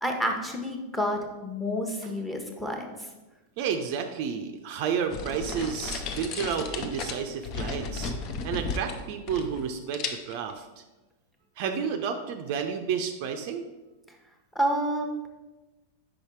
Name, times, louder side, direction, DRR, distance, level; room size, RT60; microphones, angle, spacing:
voice 1, 0.0-2.9 14.5-15.3, equal, 5° left, 3 dB, 1.0 m, -29 dB
voice 2, 3.6-10.7 11.6-13.6, right 7 dB, 45° right, 6 dB, 0.5 m, -31 dB
sound 1, 5.1-9.7 9.9-10.5, left 4 dB, 40° left, 0.6 m, -34 dB
5.5 x 5.0 x 4.6 m, 1.1 s
figure-of-eight pair, 90°, 0 cm